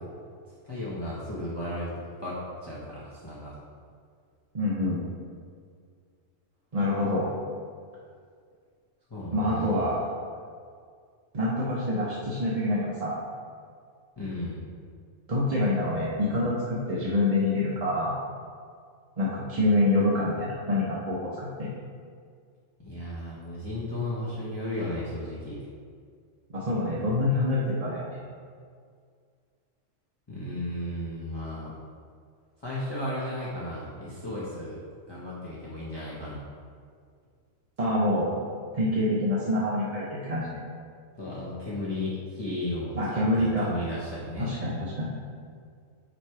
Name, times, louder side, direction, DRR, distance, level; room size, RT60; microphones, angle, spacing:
voice 1, 0.6-1.9 2.2-3.5 9.1-9.9 14.2-14.6 22.8-25.6 30.3-31.8 32.6-34.8 35.1-36.4 41.2-44.5, left 1 dB, 20° left, -8 dB, 0.9 m, -34 dB
voice 2, 4.5-5.0 6.7-7.3 9.3-10.0 11.3-13.2 15.3-18.2 19.2-21.7 26.5-28.1 37.8-38.4 38.7-40.6 43.0-43.7 44.4-45.1, left 1 dB, 35° right, -6 dB, 0.7 m, -26 dB
7.4 x 3.1 x 4.7 m, 2.1 s
omnidirectional pair, 1.3 m